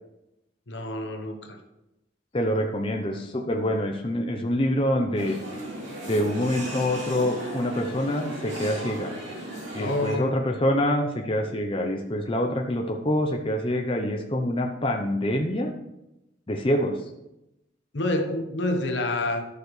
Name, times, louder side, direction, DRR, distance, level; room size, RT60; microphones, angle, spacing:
voice 1, 0.7-1.6 9.8-10.3 17.9-19.5, left 2 dB, 70° left, 5 dB, 1.1 m, -28 dB
voice 2, 2.3-5.4 6.1-9.1 9.7-15.7 16.5-17.0, left 1 dB, 30° left, 2 dB, 0.7 m, -26 dB
sound 1, 5.2-10.1, right 1 dB, 75° right, 2.6 m, -36 dB
11.5 x 6.7 x 3.2 m, 0.90 s
head